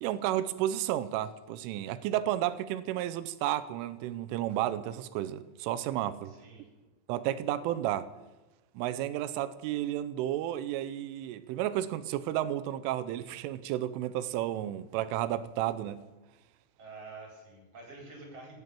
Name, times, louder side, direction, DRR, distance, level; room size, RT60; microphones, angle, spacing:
voice 1, 0.0-6.3 7.1-8.1 8.8-16.0, right 13 dB, 90° right, 3.3 m, -32 dB
voice 2, 6.2-6.7 16.8-18.6, right 3 dB, 30° right, 5.0 m, -48 dB
16.0 x 11.0 x 8.6 m
omnidirectional pair, 5.7 m